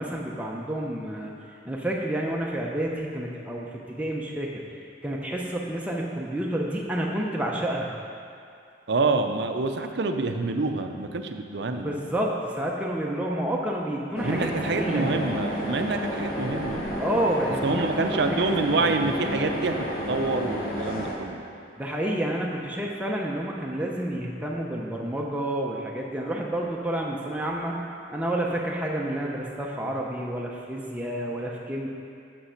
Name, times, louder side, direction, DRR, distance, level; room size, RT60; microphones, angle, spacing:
voice 1, 0.0-1.3 1.6-4.6 5.0-7.9 11.7-15.1 17.0-18.9 21.8-27.8 28.1-31.9, right 1 dB, 5° right, -2 dB, 0.6 m, -29 dB
voice 2, 8.9-12.0 14.2-16.9 17.6-19.7 20.1-21.4, right 3 dB, 65° right, 6 dB, 0.5 m, -27 dB
sound 1, 14.2-21.2, equal, 50° left, 1.0 m, -31 dB
6.8 x 5.7 x 5.7 m, 2.4 s
head